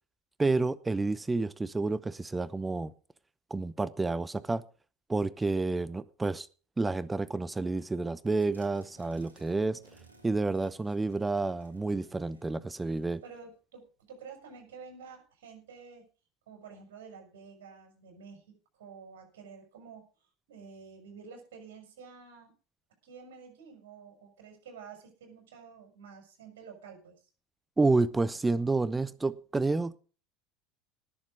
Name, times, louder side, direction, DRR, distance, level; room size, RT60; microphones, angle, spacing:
voice 1, 0.4-2.9 3.5-4.6 5.1-6.5 6.8-9.8 10.2-13.2 27.8-30.0, right 3 dB, 15° right, 0.8 m, -29 dB
sound 1, 8.3-13.3, right 3 dB, 90° right, 2.3 m, -60 dB
voice 2, 13.2-16.0 16.5-18.4 18.7-20.0 20.5-22.5 23.0-27.1, right 5 dB, 70° right, 6.5 m, -50 dB
19.0 x 7.6 x 5.2 m
figure-of-eight pair, 70°, 0 cm